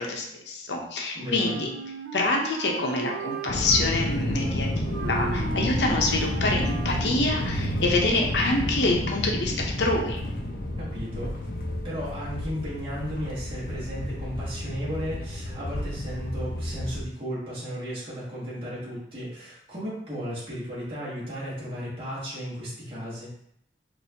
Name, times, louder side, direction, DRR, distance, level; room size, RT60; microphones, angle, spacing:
voice 1, 0.0-1.7 2.1-10.2, left 2 dB, 85° left, 0 dB, 0.7 m, -26 dB
voice 2, 1.1-1.7 10.8-11.3 11.8-23.3, equal, 30° right, -8 dB, 1.3 m, -35 dB
Wind instrument woodwind instrument, 1.3-7.1, right 5 dB, 80° right, 0.4 m, -37 dB
sound 1, 3.5-17.0, left 1 dB, 55° left, 0.5 m, -30 dB
4.1 x 2.6 x 2.8 m, 0.74 s
head